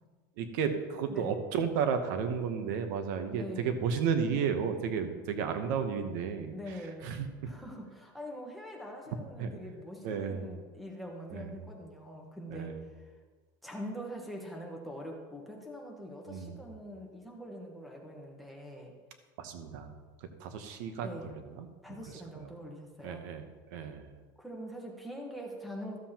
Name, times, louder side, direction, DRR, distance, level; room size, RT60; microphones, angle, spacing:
voice 1, 0.4-7.5 9.4-9.5 10.0-10.6 11.3-11.6 12.5-12.8 16.3-16.6 19.4-19.9 20.2-22.5 23.0-24.2, right 6 dB, 70° right, 8 dB, 0.9 m, -33 dB
voice 2, 3.3-3.7 6.5-7.1 7.4-12.7 13.6-18.9 21.0-21.3 21.8-23.2 24.4-26.0, equal, ahead, 0 dB, 1.3 m, -43 dB
13.5 x 7.4 x 2.9 m, 1.4 s
supercardioid pair, 155°, 10 cm